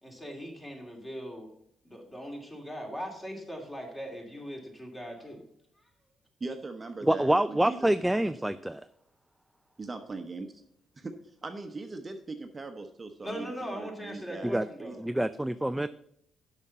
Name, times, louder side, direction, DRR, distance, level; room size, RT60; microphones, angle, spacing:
voice 1, 0.0-1.5 1.8-5.4 13.2-15.0, equal, 15° left, 2.4 m, -40 dB
voice 2, 6.4-7.9 9.8-10.6 11.0-15.2, right 3 dB, 30° right, 0.9 m, -40 dB
voice 3, 7.1-8.8 14.4-14.7 15.0-15.9, right 1 dB, 5° right, 0.3 m, -26 dB
7.0 x 5.8 x 6.7 m
cardioid pair, 90°, 0 cm